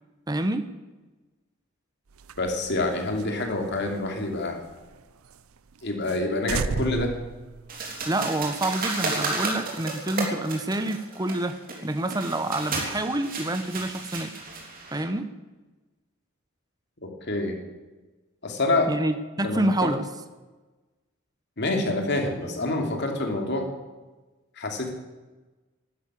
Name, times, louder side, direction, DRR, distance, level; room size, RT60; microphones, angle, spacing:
voice 1, 0.3-0.7 8.1-14.4 14.9-15.3 18.9-20.1, right 1 dB, 20° right, 9 dB, 0.9 m, -27 dB
sound 1, 2.1-5.0 5.3-5.4 5.7-5.8 6.1-6.2 6.5-8.2, right 4 dB, 90° right, 0.7 m, -34 dB
voice 2, 2.4-4.6 5.8-7.1 17.0-17.6 18.4-18.9 19.4-19.9 21.6-23.7 24.6-24.9, left 2 dB, 55° left, 3 dB, 2.9 m, -27 dB
sound 2, 7.7-15.0, right 3 dB, 45° right, 3.6 m, -33 dB
12.5 x 11.5 x 9.7 m, 1.2 s
head